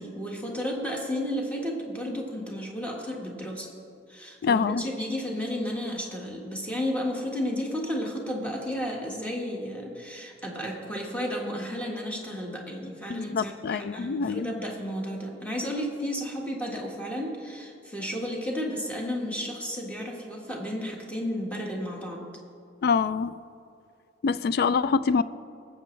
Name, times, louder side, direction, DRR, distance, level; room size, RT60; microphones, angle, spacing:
voice 1, 0.0-3.7 4.1-22.2, equal, 5° left, -1 dB, 1.5 m, -33 dB
voice 2, 4.4-4.9 13.1-14.5 22.8-23.4 24.2-25.2, left 5 dB, 55° left, 16 dB, 0.3 m, -25 dB
19.5 x 7.9 x 3.2 m, 2.6 s
head